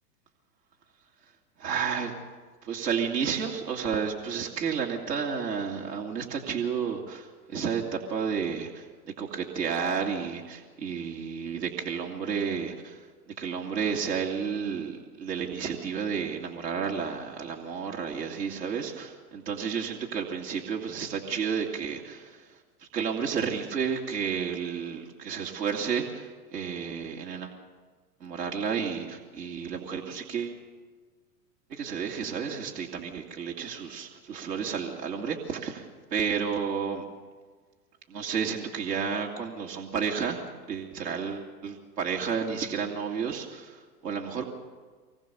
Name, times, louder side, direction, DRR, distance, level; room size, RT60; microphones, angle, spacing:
voice 1, 1.6-2.1 2.6-27.5 28.2-30.6 31.7-37.1 38.1-44.5, right 6 dB, 80° right, -1 dB, 2.8 m, -31 dB
24.0 x 20.5 x 7.1 m, 1.4 s
hypercardioid pair, 115°, 48 cm